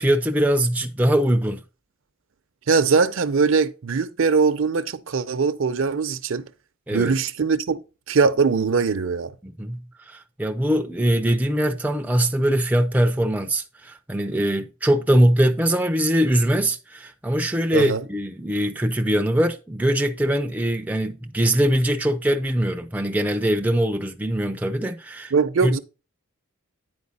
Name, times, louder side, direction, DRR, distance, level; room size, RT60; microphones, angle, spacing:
voice 1, 0.0-1.6 6.9-7.1 9.4-25.3 25.6-25.8, right 1 dB, 5° right, 0.4 m, -22 dB
voice 2, 2.7-6.4 6.9-7.8 8.1-9.3 17.7-18.0 25.3-25.8, right 5 dB, 65° right, 0.5 m, -21 dB
9.5 x 4.5 x 4.1 m
head